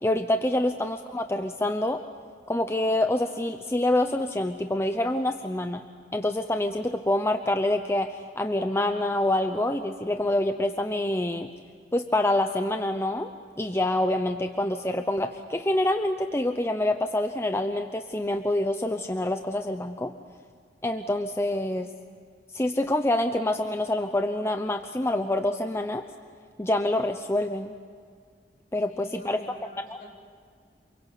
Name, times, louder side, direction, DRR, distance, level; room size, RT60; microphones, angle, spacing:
voice 1, 0.0-2.0 2.5-5.8 6.1-11.5 11.9-13.3 13.6-20.1 20.8-21.9 22.5-26.0 26.6-27.7 28.7-29.4 29.9-30.0, left 1 dB, 15° left, 6 dB, 0.8 m, -26 dB
voice 2, 28.9-30.1, equal, 50° left, -1 dB, 4.9 m, -47 dB
28.5 x 22.5 x 8.3 m, 2.1 s
head